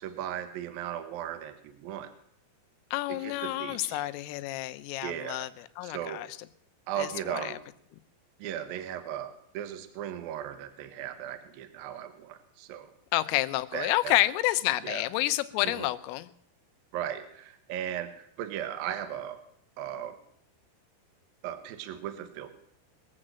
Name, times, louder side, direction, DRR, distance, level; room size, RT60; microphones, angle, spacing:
voice 1, 0.0-2.1 3.1-4.0 5.0-5.5 5.8-6.2 6.9-7.6 8.4-12.9 13.7-14.1 14.8-15.0 15.6-15.9 16.9-19.4 19.8-20.2 21.4-22.5, right 10 dB, 70° right, 8 dB, 2.3 m, -37 dB
voice 2, 2.9-6.3 7.0-7.6 13.1-16.3, left 16 dB, 85° left, 11 dB, 3.4 m, -29 dB
21.5 x 7.8 x 7.6 m, 0.69 s
omnidirectional pair, 5.7 m